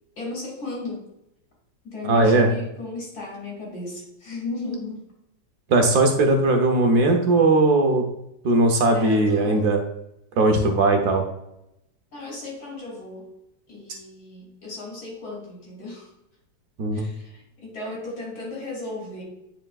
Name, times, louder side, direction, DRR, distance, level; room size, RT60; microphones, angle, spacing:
voice 1, 0.2-1.1 1.8-5.1 8.9-9.7 12.1-13.3 13.7-16.1 16.9-19.2, left 2 dB, 60° left, -3 dB, 3.1 m, -35 dB
voice 2, 2.1-2.5 5.7-8.0 8.4-9.8 10.4-11.2 16.8-17.0, right 2 dB, 65° right, 3 dB, 1.3 m, -18 dB
9.6 x 4.4 x 2.3 m, 0.83 s
omnidirectional pair, 1.9 m